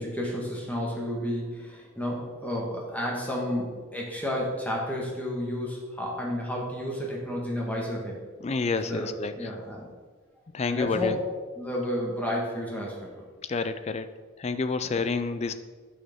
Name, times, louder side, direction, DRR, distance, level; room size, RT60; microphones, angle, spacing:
voice 1, 0.0-8.2 8.8-9.9 10.7-11.2 11.5-13.3, left 1 dB, 10° left, -3 dB, 1.4 m, -31 dB
voice 2, 8.4-9.6 10.5-11.2 13.5-14.1 14.4-15.5, left 4 dB, 30° left, 11 dB, 0.4 m, -29 dB
9.6 x 6.2 x 3.6 m, 1.4 s
head